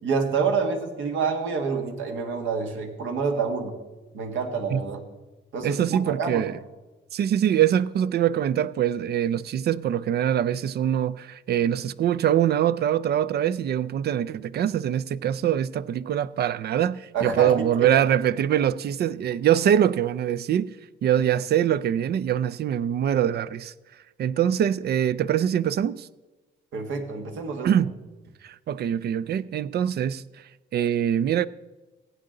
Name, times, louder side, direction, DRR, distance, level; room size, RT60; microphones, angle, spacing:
voice 1, 0.0-3.7 4.1-5.0 5.5-6.5 17.1-18.0 26.7-27.8, right 5 dB, 75° right, 1.7 m, -27 dB
voice 2, 5.6-6.6 7.1-20.8 21.0-23.7 24.2-26.1 27.6-27.9 28.4-30.2 30.7-31.5, right 10 dB, 55° right, 0.4 m, -23 dB
16.0 x 8.9 x 3.9 m
cardioid pair, 90°, 20 cm